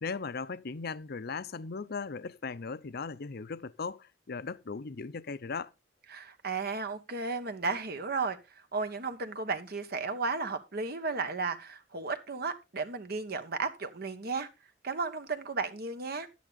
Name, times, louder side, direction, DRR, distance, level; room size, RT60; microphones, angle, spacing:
voice 1, 0.0-5.7, left 4 dB, 55° left, 0.7 m, -38 dB
voice 2, 6.1-14.5 14.8-16.3, right 4 dB, 55° right, 1.2 m, -34 dB
11.0 x 9.1 x 4.0 m
head